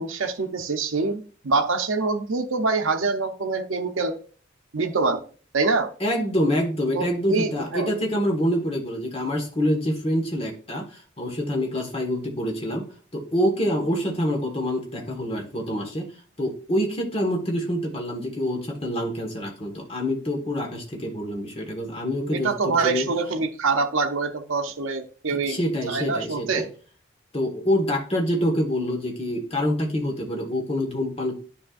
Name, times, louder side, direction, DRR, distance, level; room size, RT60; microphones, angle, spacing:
voice 1, 0.0-4.2 4.7-5.2 5.5-5.9 6.9-7.9 22.3-25.6 25.9-26.7, right 3 dB, 80° right, 5 dB, 0.7 m, -25 dB
voice 2, 6.0-12.8 13.1-16.0 16.4-23.1 25.3-26.7 27.3-31.4, equal, 30° left, 1 dB, 1.5 m, -26 dB
9.8 x 5.5 x 2.5 m, 0.41 s
head